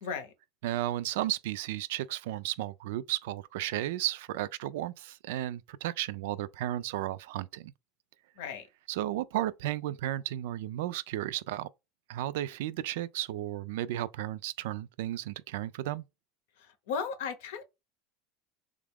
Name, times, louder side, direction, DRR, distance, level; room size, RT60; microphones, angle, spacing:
voice 1, 0.0-0.3 8.4-8.7 16.6-17.6, left 6 dB, 80° left, 0.8 m, -36 dB
voice 2, 0.6-7.7 8.9-11.7 12.1-16.0, right 14 dB, 80° right, 0.3 m, -34 dB
3.4 x 2.4 x 3.4 m
supercardioid pair, 115°, 0 cm